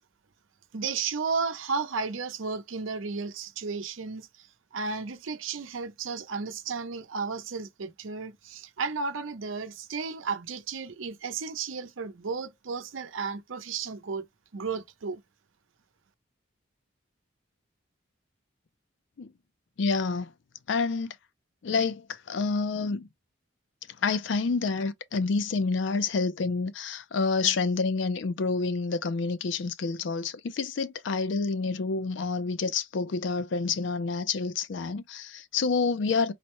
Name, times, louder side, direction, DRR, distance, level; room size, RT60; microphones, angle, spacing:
voice 1, 0.7-4.5 4.7-14.2 14.5-15.2, right 5 dB, 85° right, 0.6 m, -33 dB
voice 2, 19.8-20.3 20.7-21.2 21.6-23.1 24.0-36.3, left 4 dB, 70° left, 0.4 m, -28 dB
4.0 x 2.1 x 2.9 m
head